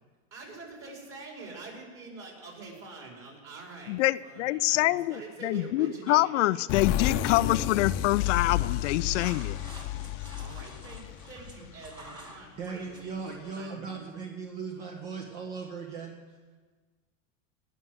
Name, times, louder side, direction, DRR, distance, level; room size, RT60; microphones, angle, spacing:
voice 1, 0.3-6.5 10.4-13.9, right 3 dB, 35° right, -1 dB, 4.9 m, -45 dB
voice 2, 3.9-9.6, left 17 dB, 70° left, 16 dB, 0.5 m, -26 dB
sound 1, 6.7-12.2, left 12 dB, 50° left, 0.8 m, -31 dB
sound 2, 8.5-13.7, right 1 dB, 10° right, 2.2 m, -50 dB
voice 3, 12.6-16.2, right 5 dB, 50° right, 2 dB, 1.8 m, -38 dB
18.5 x 6.3 x 7.9 m, 1.4 s
supercardioid pair, 120°, 38 cm